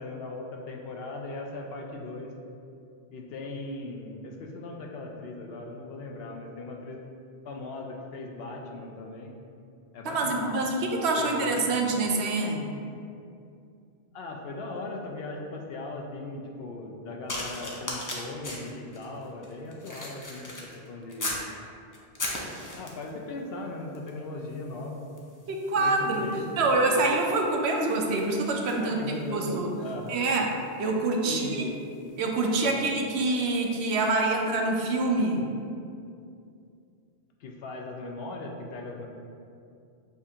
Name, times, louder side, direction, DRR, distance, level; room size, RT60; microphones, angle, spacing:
voice 1, 0.0-2.3 3.1-7.0 7.4-9.3 9.9-10.6 11.2-11.8 14.1-21.4 22.8-25.0 25.7-26.5 28.8-30.2 31.2-31.8 32.6-32.9 37.4-39.1, left 2 dB, 70° left, 1 dB, 0.8 m, -38 dB
voice 2, 10.0-12.6 25.5-29.0 29.3-29.7 30.1-31.7 32.2-35.5, right 2 dB, 85° right, 1 dB, 0.8 m, -26 dB
sound 1, 17.3-21.5 21.9-23.2 23.9-24.2 24.5-34.2 34.9-35.0, left 1 dB, 30° left, 0.4 m, -40 dB
6.9 x 2.4 x 2.7 m, 2.5 s
omnidirectional pair, 1.1 m